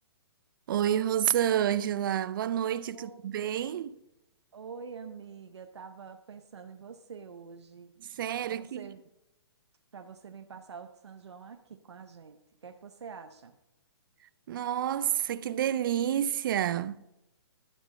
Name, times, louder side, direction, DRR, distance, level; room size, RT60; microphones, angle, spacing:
voice 1, 0.7-4.0 8.0-8.9 14.5-17.0, right 10 dB, 50° right, 0.5 m, -29 dB
voice 2, 2.9-3.3 4.5-8.0 8.4-9.0 9.9-13.6, right 6 dB, 85° right, 0.8 m, -46 dB
12.0 x 7.2 x 4.0 m
hypercardioid pair, 145°, 14 cm